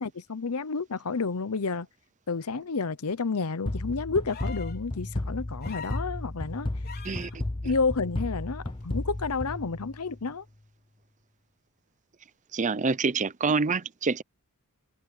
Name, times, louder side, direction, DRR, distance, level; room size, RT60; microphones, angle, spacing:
voice 1, 0.0-1.9 2.3-6.7 7.6-10.4, left 4 dB, 80° left, 0.8 m, -30 dB
sound 1, 3.7-10.3, left 1 dB, 25° left, 0.8 m, -34 dB
sound 2, 4.3-4.8 5.6-6.1 6.8-7.3 8.8-8.9, left 6 dB, 45° left, 5.0 m, -42 dB
voice 2, 12.5-14.2, right 4 dB, 35° right, 0.6 m, -26 dB
head